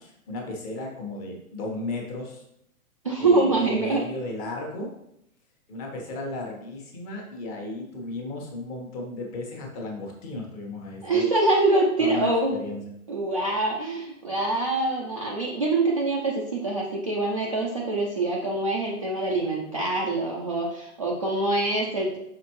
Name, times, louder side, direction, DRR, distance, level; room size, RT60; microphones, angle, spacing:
voice 1, 0.0-2.4 3.2-4.9 5.7-11.3 12.0-12.8, left 2 dB, 25° left, 0 dB, 1.2 m, -34 dB
voice 2, 3.0-4.0 11.0-12.5 13.1-22.2, right 2 dB, 25° right, -4 dB, 0.4 m, -25 dB
6.4 x 5.1 x 3.0 m, 0.78 s
hypercardioid pair, 155°, 44 cm